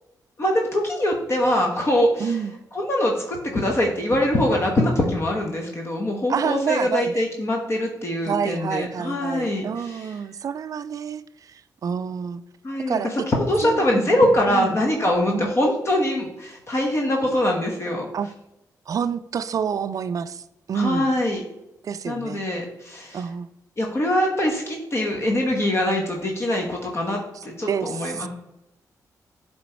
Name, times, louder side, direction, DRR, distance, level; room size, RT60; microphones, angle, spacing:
voice 1, 0.4-2.4 2.7-10.1 12.6-18.1 20.7-21.4 22.0-23.2 23.8-28.3, left 1 dB, 40° left, 0 dB, 1.1 m, -23 dB
voice 2, 2.2-2.5 6.3-7.2 8.3-12.4 12.9-13.1 13.6-14.8 15.3-15.5 18.1-18.3 18.9-21.1 21.8-22.4 23.1-23.5 27.7-28.3, right 7 dB, 55° right, 14 dB, 0.4 m, -28 dB
8.2 x 3.1 x 4.4 m, 0.91 s
cardioid pair, 90°, 7 cm